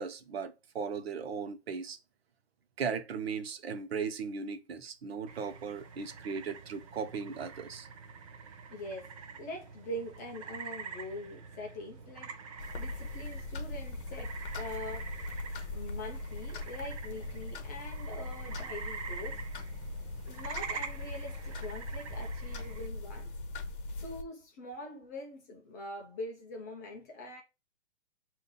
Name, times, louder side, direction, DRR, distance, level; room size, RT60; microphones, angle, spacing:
voice 1, 0.0-2.0 2.8-7.9, right 6 dB, 60° right, 0.9 m, -37 dB
sound 1, 5.3-22.9, right 5 dB, 30° right, 0.6 m, -46 dB
voice 2, 8.4-15.2 15.7-19.4 20.3-23.3 24.0-27.4, left 1 dB, 15° left, 0.5 m, -44 dB
sound 2, 12.6-24.2, left 2 dB, 50° left, 1.0 m, -40 dB
5.2 x 2.7 x 3.7 m
hypercardioid pair, 140°, 35 cm